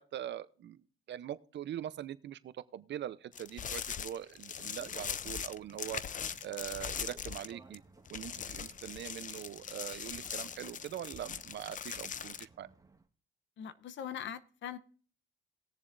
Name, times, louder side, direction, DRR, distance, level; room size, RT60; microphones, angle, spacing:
voice 1, 0.0-6.0 6.4-7.8 8.1-12.7, right 11 dB, 65° right, 0.8 m, -42 dB
sound 1, 3.3-7.8 8.1-12.5, left 8 dB, 40° left, 0.5 m, -41 dB
sound 2, 4.5-13.1, right 3 dB, 15° right, 1.7 m, -59 dB
voice 2, 13.6-14.8, left 9 dB, 70° left, 0.9 m, -41 dB
20.0 x 7.1 x 2.6 m
cardioid pair, 90°, 20 cm